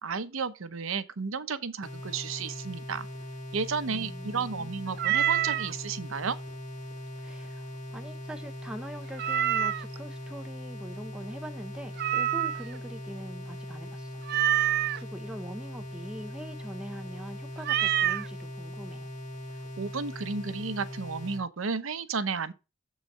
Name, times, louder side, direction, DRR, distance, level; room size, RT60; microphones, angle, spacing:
voice 1, 0.0-3.1 3.5-6.4 19.8-22.5, right 5 dB, 75° right, 0.8 m, -33 dB
sound 1, 1.8-21.4, equal, 35° left, 1.5 m, -40 dB
voice 2, 3.9-4.7 7.2-14.2 14.6-19.1, right 1 dB, 5° right, 0.6 m, -43 dB
Meow, 5.0-5.7 9.2-10.0 12.0-12.8 14.3-15.0 17.6-18.3, right 11 dB, 50° right, 0.4 m, -26 dB
7.4 x 4.0 x 6.5 m
head